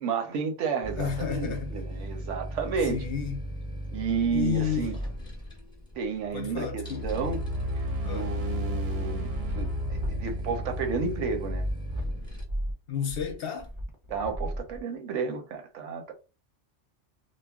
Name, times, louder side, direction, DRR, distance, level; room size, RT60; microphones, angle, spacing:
voice 1, 0.0-3.0 3.9-4.9 6.0-7.4 8.0-11.6 14.1-16.1, right 5 dB, 85° right, 1.0 m, -31 dB
sound 1, 0.8-12.4, right 1 dB, 5° left, 0.7 m, -37 dB
voice 2, 1.0-1.8 2.8-3.5 4.3-5.0 6.3-7.2 8.0-8.3 12.9-13.7, left 8 dB, 60° left, 0.7 m, -32 dB
sound 2, 6.2-12.4, equal, 65° right, 0.8 m, -35 dB
sound 3, 9.1-15.1, equal, 30° right, 0.5 m, -35 dB
2.3 x 2.1 x 3.4 m
omnidirectional pair, 1.2 m